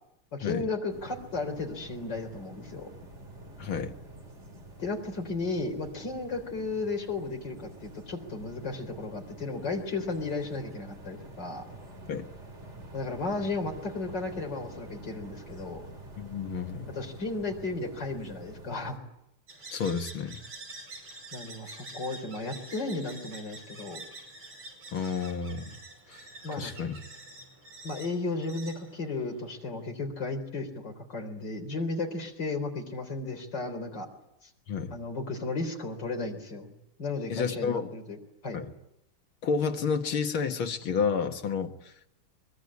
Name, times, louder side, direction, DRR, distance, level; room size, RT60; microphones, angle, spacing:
voice 1, 0.3-2.9 4.8-11.6 12.9-15.8 17.0-19.0 21.3-24.0 26.4-26.7 27.8-34.1 34.9-36.7 37.0-38.2 38.4-38.6, left 3 dB, 50° left, 4 dB, 4.6 m, -34 dB
sound 1, 0.9-19.0, right 1 dB, 30° right, 4.0 m, -47 dB
voice 2, 3.6-3.9 12.1-12.3 16.2-17.0 19.7-20.4 24.9-25.7 26.1-26.2 26.6-27.0 34.7-34.9 37.3-37.9 38.5-38.7 39.4-41.9, left 6 dB, 70° left, 5 dB, 2.5 m, -30 dB
sound 2, 19.5-29.7, right 2 dB, 75° right, 6.4 m, -47 dB
24.0 x 22.0 x 9.7 m, 0.83 s
omnidirectional pair, 2.4 m